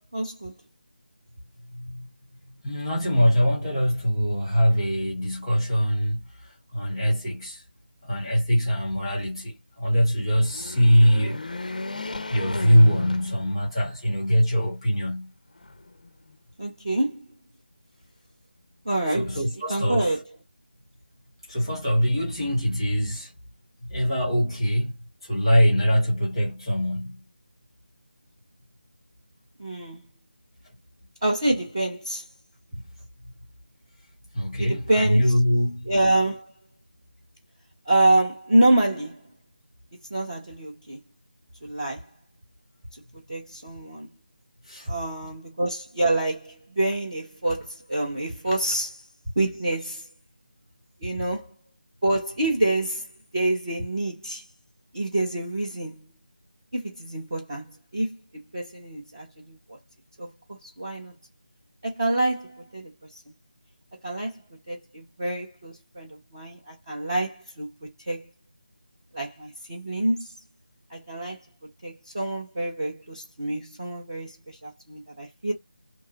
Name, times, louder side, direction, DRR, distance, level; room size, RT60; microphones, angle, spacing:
voice 1, 0.1-0.5 16.6-17.2 18.8-19.4 19.7-20.2 29.6-30.0 31.2-32.3 34.6-35.3 35.8-36.5 37.9-39.3 40.1-41.0 41.6-42.1 42.9-43.0 43.3-44.1 44.9-49.1 49.4-50.1 51.0-51.6 52.0-53.1 53.3-54.4 54.9-56.1 56.7-59.8 60.2-61.1 61.8-63.2 64.0-64.4 64.7-68.3 69.1-70.3 70.9-71.4 71.8-75.5, right 1 dB, 20° right, 0.5 m, -27 dB
voice 2, 1.7-2.1 2.6-7.6 8.0-11.4 12.3-15.3 19.1-20.1 21.5-23.3 23.9-24.9 25.2-27.2 34.3-35.9 44.7-44.9, equal, ahead, 1.0 m, -23 dB
sound 1, 10.3-13.9 14.4-14.5 15.6-16.4, left 3 dB, 45° left, 0.4 m, -35 dB
2.8 x 2.3 x 3.7 m
figure-of-eight pair, 180°, 6 cm